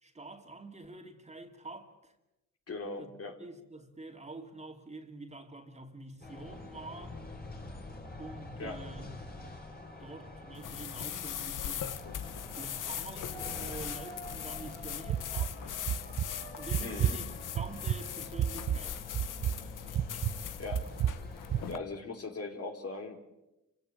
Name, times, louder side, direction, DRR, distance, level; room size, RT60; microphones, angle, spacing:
voice 1, 0.0-2.1 3.0-3.1 3.4-7.2 8.2-9.3 10.0-12.0 12.5-15.7 16.6-19.2, right 2 dB, 20° right, 2.6 m, -47 dB
voice 2, 2.7-3.4 8.6-8.8 16.8-17.2 20.1-20.3 20.6-20.8 21.7-23.2, left 3 dB, 50° left, 3.2 m, -40 dB
sound 1, 6.2-21.7, left 2 dB, 30° left, 3.8 m, -46 dB
sound 2, 10.5-21.8, left 10 dB, 90° left, 1.1 m, -40 dB
sound 3, 15.1-15.5 15.9-16.3 16.7-17.2 17.6-18.0 18.4-18.8 19.1-19.6 19.9-20.3 20.7-21.2 21.5-21.6, right 10 dB, 70° right, 0.8 m, -30 dB
29.0 x 16.5 x 8.4 m
wide cardioid pair, 120°, 31 cm